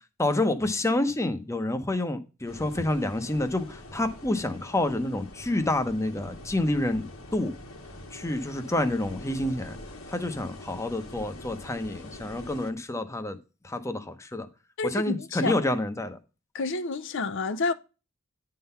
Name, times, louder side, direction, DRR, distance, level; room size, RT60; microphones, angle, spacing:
voice 1, 0.2-7.5 8.1-9.8 10.1-13.4 13.6-14.5 14.8-16.2, left 1 dB, 15° left, 0.8 m, -28 dB
sound 1, 2.5-12.7, left 1 dB, 85° left, 1.7 m, -44 dB
voice 2, 14.8-15.6 16.5-17.7, left 3 dB, 60° left, 0.7 m, -29 dB
10.0 x 3.8 x 5.6 m
head